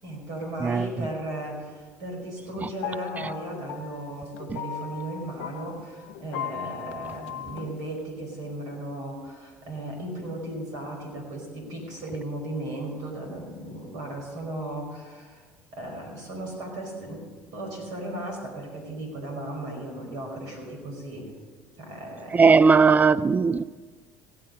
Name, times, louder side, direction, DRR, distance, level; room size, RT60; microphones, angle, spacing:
voice 1, 0.0-15.4 15.7-17.2 17.5-21.3 21.8-22.9, right 1 dB, 65° right, 5.0 m, -36 dB
sound 1, 2.7-7.9, left 10 dB, 75° left, 0.5 m, -38 dB
voice 2, 22.3-23.6, right 5 dB, 25° right, 0.4 m, -18 dB
17.0 x 7.8 x 6.5 m
hypercardioid pair, 70°, 7 cm